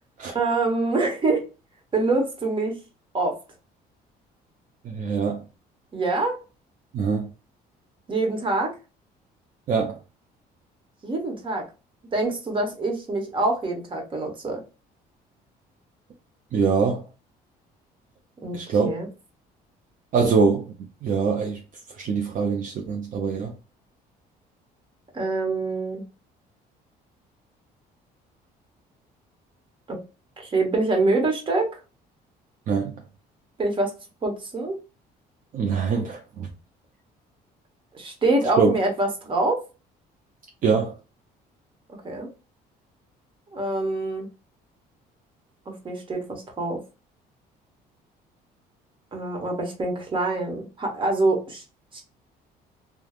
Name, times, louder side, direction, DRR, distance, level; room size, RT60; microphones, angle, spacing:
voice 1, 0.3-1.5 1.9-2.8 3.1-3.4 5.9-6.4 8.1-8.7 11.0-11.6 12.1-14.6 18.4-18.6 18.8-19.1 25.1-26.0 29.9-30.0 30.4-31.7 33.6-33.9 34.2-34.8 37.9-39.6 42.0-42.3 43.5-44.3 45.7-46.8 49.1-51.6 51.9-52.0, right 2 dB, 30° right, 1.1 m, -25 dB
voice 2, 4.8-5.4 6.9-7.3 9.7-10.0 16.5-17.0 18.5-18.9 20.1-20.7 21.0-21.6 22.0-23.5 32.7-33.0 35.5-36.5 38.6-38.8 40.6-40.9, right 5 dB, 50° right, 0.6 m, -23 dB
3.4 x 2.3 x 2.3 m
cardioid pair, 110°, 17 cm